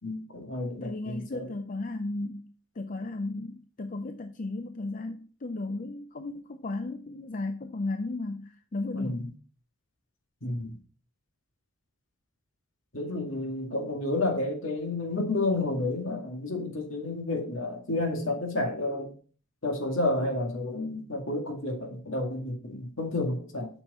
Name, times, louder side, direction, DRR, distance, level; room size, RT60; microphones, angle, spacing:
voice 1, 0.0-1.5 8.9-9.3 10.4-10.8 12.9-19.1 19.6-23.7, left 2 dB, 65° left, 2 dB, 2.2 m, -30 dB
voice 2, 0.8-2.5 2.7-9.4, left 2 dB, 40° left, 7 dB, 0.5 m, -35 dB
7.7 x 6.4 x 4.2 m, 0.41 s
head